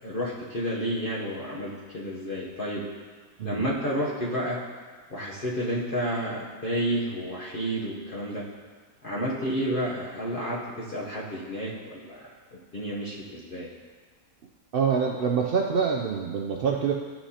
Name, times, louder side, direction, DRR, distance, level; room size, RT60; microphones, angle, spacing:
voice 1, 0.0-2.9 3.4-4.6 5.1-8.4 9.0-13.7, equal, 40° left, -6 dB, 1.0 m, -31 dB
voice 2, 14.7-16.9, right 6 dB, 85° right, 0 dB, 0.5 m, -25 dB
12.5 x 5.9 x 2.8 m, 1.5 s
omnidirectional pair, 1.6 m